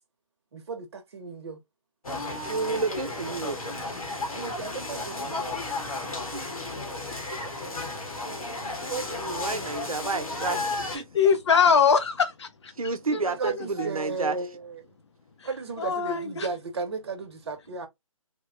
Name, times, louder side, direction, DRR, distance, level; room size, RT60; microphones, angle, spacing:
voice 1, 0.5-1.6 4.3-5.6 13.0-14.9 15.4-17.9, right 4 dB, 50° right, 0.9 m, -34 dB
sound 1, 2.0-11.0, left 2 dB, 80° left, 1.1 m, -33 dB
voice 2, 2.4-3.6 6.3-6.5 7.3-7.5 8.1-8.2 8.9-10.6 10.9-11.1 12.8-14.4, right 4 dB, 80° right, 0.8 m, -30 dB
voice 3, 11.1-12.5 13.6-13.9 15.8-16.5, left 6 dB, 50° left, 0.6 m, -22 dB
3.4 x 2.1 x 2.4 m
figure-of-eight pair, 155°, 18 cm